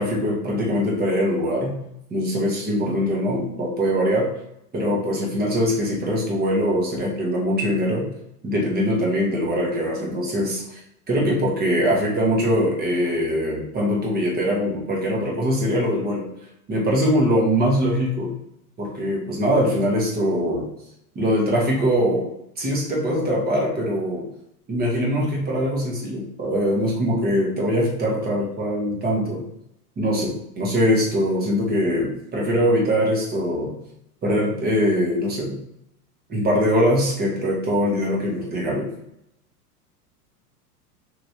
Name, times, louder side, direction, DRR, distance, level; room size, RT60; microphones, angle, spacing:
voice 1, 0.0-1.7 2.1-4.3 4.7-8.1 8.4-10.8 11.1-16.3 16.7-18.3 18.8-20.7 21.1-22.2 22.6-24.2 24.7-29.4 30.0-33.7 34.2-35.6 36.3-38.9, equal, 20° right, -3 dB, 1.1 m, -22 dB
3.2 x 2.9 x 2.7 m, 0.81 s
hypercardioid pair, 105°, 47 cm